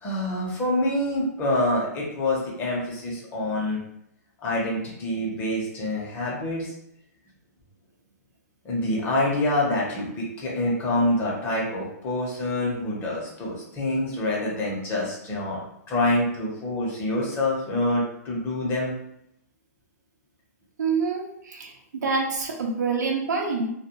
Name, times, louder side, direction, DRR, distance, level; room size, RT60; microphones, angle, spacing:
voice 1, 0.0-3.8 4.4-6.7 8.6-18.9, left 1 dB, 25° left, -4 dB, 0.9 m, -26 dB
voice 2, 20.8-23.7, right 4 dB, 85° right, 1 dB, 0.7 m, -26 dB
2.4 x 2.1 x 2.9 m, 0.76 s
hypercardioid pair, 145°, 9 cm